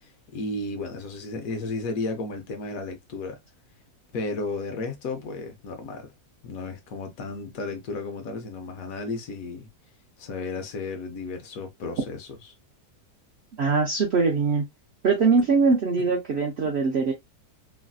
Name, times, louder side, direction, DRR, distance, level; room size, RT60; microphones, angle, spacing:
voice 1, 0.0-3.4 4.1-6.1 6.4-9.7 10.2-12.3 16.6-16.7, left 3 dB, 65° left, 1.0 m, -33 dB
voice 2, 13.6-14.6 15.0-17.1, right 4 dB, 65° right, 0.6 m, -22 dB
3.2 x 2.5 x 2.2 m
omnidirectional pair, 1.7 m